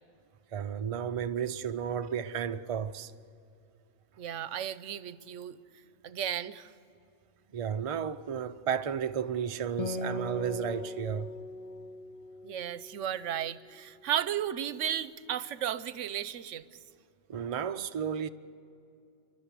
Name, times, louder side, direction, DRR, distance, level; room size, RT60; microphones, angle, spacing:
voice 1, 0.5-3.1 7.5-11.3 17.3-18.3, right 8 dB, 40° right, 0.5 m, -33 dB
voice 2, 4.2-5.6 6.0-6.7 12.4-16.7, right 10 dB, 80° right, 1.0 m, -34 dB
Acoustic guitar, 9.8-13.5, left 2 dB, 35° left, 0.7 m, -39 dB
29.5 x 12.0 x 8.3 m
omnidirectional pair, 1.3 m